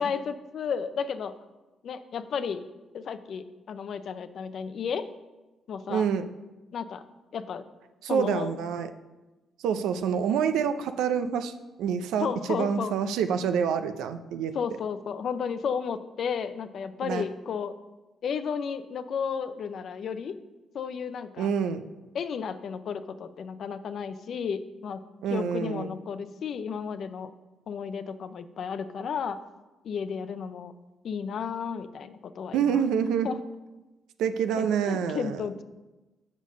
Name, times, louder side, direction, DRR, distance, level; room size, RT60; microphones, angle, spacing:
voice 1, 0.0-1.3 1.8-2.6 2.9-5.1 5.7-6.1 6.7-7.0 7.3-7.6 8.1-8.5 12.2-12.9 14.5-17.7 18.2-20.4 20.7-21.5 22.1-25.0 25.3-27.3 27.7-29.4 29.8-30.7 31.0-32.8 33.2-33.4 34.6-35.6, left 6 dB, 60° left, 11 dB, 0.5 m, -33 dB
voice 2, 5.9-6.3 8.0-8.9 9.6-11.5 11.8-14.5 17.0-17.2 21.4-21.8 25.2-25.9 32.5-33.3 34.2-35.4, right 7 dB, 85° right, 9 dB, 0.5 m, -27 dB
6.5 x 5.3 x 6.2 m, 1.1 s
cardioid pair, 90°, 0 cm